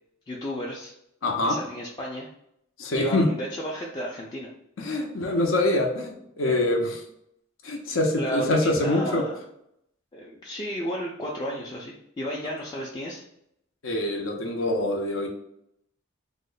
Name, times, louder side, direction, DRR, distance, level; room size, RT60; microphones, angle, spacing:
voice 1, 0.3-0.9 1.4-2.3 2.9-4.5 8.2-9.4 10.1-13.2, equal, 20° left, -4 dB, 0.3 m, -32 dB
voice 2, 1.2-1.6 2.8-3.3 4.8-7.0 7.6-9.2 13.8-15.3, left 2 dB, 75° left, 1 dB, 0.6 m, -25 dB
3.0 x 2.1 x 3.8 m, 0.77 s
head